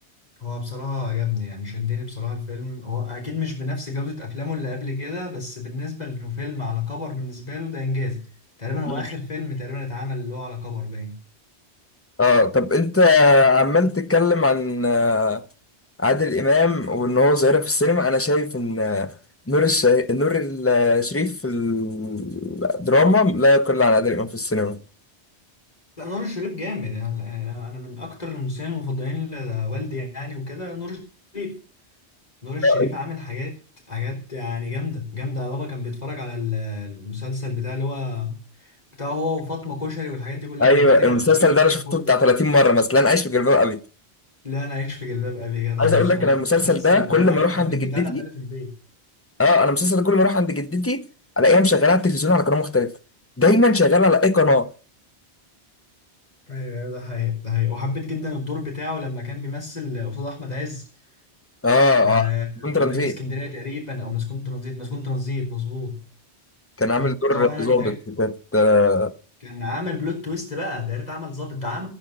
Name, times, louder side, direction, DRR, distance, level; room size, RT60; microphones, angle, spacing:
voice 1, 0.4-8.3 8.6-11.2 26.0-31.0 31.3-31.6 32.4-33.5 33.9-42.1 44.4-46.3 46.6-48.7 56.5-60.8 62.0-66.0 67.0-67.9 69.4-71.9, left 4 dB, 35° left, 4.2 m, -29 dB
voice 2, 12.2-15.4 16.0-19.1 19.5-24.8 32.6-32.9 40.6-43.8 45.8-48.3 49.4-51.1 51.4-52.9 53.4-54.7 61.6-62.3 62.6-63.2 66.8-69.1, left 3 dB, 15° left, 0.7 m, -18 dB
15.0 x 9.3 x 6.7 m
omnidirectional pair, 1.1 m